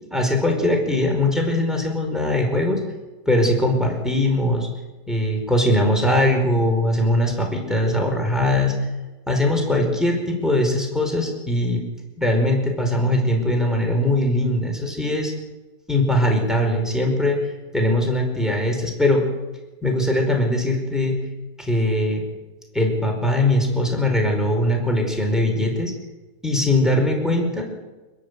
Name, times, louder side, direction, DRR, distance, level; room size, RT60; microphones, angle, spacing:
voice 1, 0.1-2.8 3.2-4.7 5.1-8.7 9.3-11.8 12.2-15.3 15.9-17.4 17.7-19.3 19.8-21.2 21.6-22.2 22.7-25.9 26.4-27.6, left 1 dB, ahead, 1 dB, 5.1 m, -21 dB
29.0 x 11.0 x 8.4 m, 1.2 s
omnidirectional pair, 1.9 m